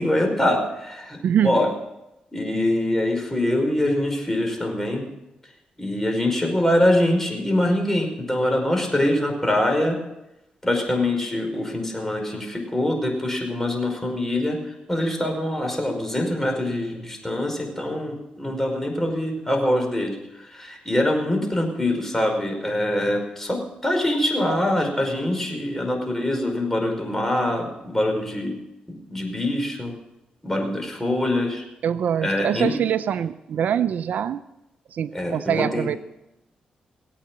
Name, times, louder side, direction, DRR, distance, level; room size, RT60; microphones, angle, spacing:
voice 1, 0.0-1.7 2.3-5.0 5.8-10.0 10.6-28.6 29.1-29.9 30.4-31.6 32.2-32.7 35.1-36.0, left 1 dB, 15° left, 2 dB, 5.1 m, -24 dB
voice 2, 1.2-1.7 31.8-34.4 34.9-36.0, right 9 dB, 75° right, 14 dB, 0.5 m, -24 dB
19.0 x 8.7 x 7.4 m, 0.92 s
cardioid pair, 70°, 3 cm